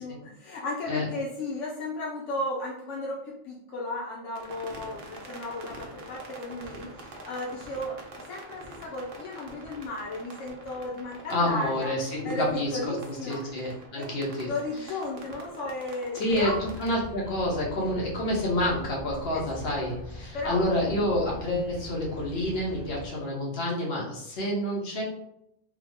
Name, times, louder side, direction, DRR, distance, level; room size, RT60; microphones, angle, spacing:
voice 1, 0.0-13.4 14.0-14.1 14.4-16.6 19.3-19.8 20.3-20.6, left 2 dB, 80° left, -3 dB, 1.0 m, -34 dB
sound 1, 4.3-16.9, right 2 dB, 55° right, 0.8 m, -45 dB
voice 2, 11.3-13.0 13.3-14.5 16.1-25.0, left 1 dB, 60° left, -4 dB, 1.2 m, -28 dB
sound 2, 16.3-23.1, left 1 dB, 25° left, 0.7 m, -42 dB
3.6 x 2.0 x 3.5 m, 0.78 s
omnidirectional pair, 1.2 m